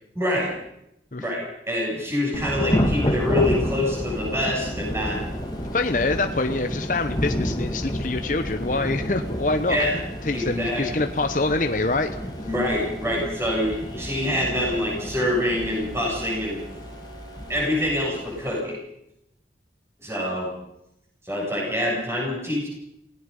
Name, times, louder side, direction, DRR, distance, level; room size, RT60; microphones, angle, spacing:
voice 1, 0.2-0.5 1.2-5.2 9.7-10.0 10.3-10.8 12.5-16.6 17.5-18.8 20.0-20.5 21.2-22.7, left 1 dB, 15° right, -3 dB, 7.5 m, -25 dB
Thunder / Rain, 2.3-18.6, equal, 20° left, 2.0 m, -30 dB
sound 1, 4.6-18.0, right 1 dB, 40° right, 3.2 m, -42 dB
voice 2, 5.7-9.8 10.2-12.1, left 2 dB, 45° left, 7 dB, 1.0 m, -25 dB
27.5 x 17.5 x 5.5 m, 0.79 s
head